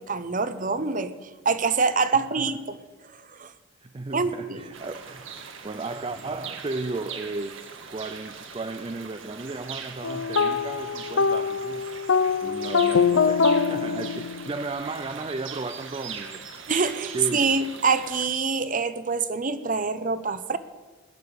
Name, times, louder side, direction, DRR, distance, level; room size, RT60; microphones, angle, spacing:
voice 1, 0.0-2.8 3.4-3.5 4.1-4.7 16.7-20.6, right 4 dB, 40° right, 0.9 m, -25 dB
voice 2, 3.8-5.3 5.6-11.9 12.4-16.4 17.1-17.5, right 3 dB, 25° right, 0.5 m, -35 dB
sound 1, 4.7-18.3, right 6 dB, 80° right, 1.7 m, -41 dB
sound 2, 10.0-14.6, left 5 dB, 75° left, 0.7 m, -23 dB
18.5 x 6.9 x 9.7 m
head